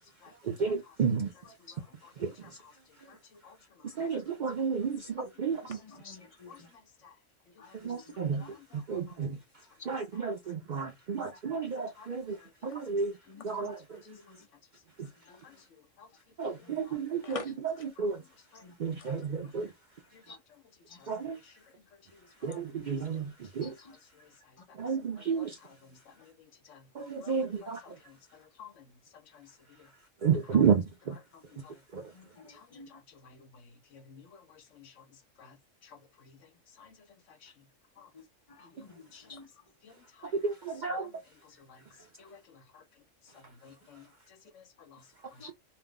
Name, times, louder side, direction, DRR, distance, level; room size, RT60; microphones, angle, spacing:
voice 1, 0.4-1.3 2.2-2.3 4.0-5.8 7.8-8.4 8.7-9.4 9.9-12.4 12.6-13.1 13.4-14.0 15.0-15.1 16.4-18.2 18.8-19.7 21.1-21.4 22.4-23.7 24.8-25.6 27.0-27.8 30.2-31.2 31.9-32.0 40.3-41.1, right 6 dB, 65° right, 0.4 m, -31 dB
voice 2, 5.8-6.5 7.6-8.5 11.1-11.2 13.3-13.7 14.1-14.4 16.6-16.8 17.2-17.5 18.6-18.7 19.0-19.1 20.3-20.4 20.9-21.0 22.5-22.6 22.9-23.0 23.6-24.0 32.1-32.5 32.7-32.9 38.8-39.5 45.4-45.5, left 4 dB, 35° left, 0.6 m, -48 dB
voice 3, 33.9-34.4 34.8-34.9 35.4-35.6 36.8-37.0 37.4-37.5 38.0-38.1 39.1-39.2 39.8-39.9 40.9-41.1 41.7-41.8 42.2-42.4 42.7-42.8 43.6-44.0 44.5-45.0 45.4-45.5, left 7 dB, 75° left, 1.0 m, -52 dB
2.6 x 2.0 x 3.5 m
omnidirectional pair, 1.3 m